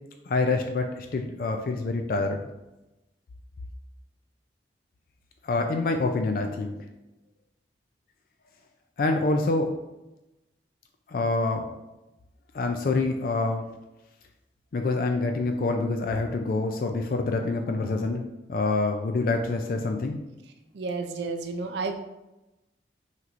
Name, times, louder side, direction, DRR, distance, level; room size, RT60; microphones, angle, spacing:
voice 1, 0.3-2.5 5.4-6.7 9.0-9.7 11.1-11.7 12.5-13.6 14.7-20.2, left 3 dB, 55° left, 4 dB, 0.3 m, -26 dB
voice 2, 20.7-21.9, right 4 dB, 75° right, 5 dB, 0.4 m, -31 dB
5.9 x 2.9 x 2.5 m, 0.98 s
head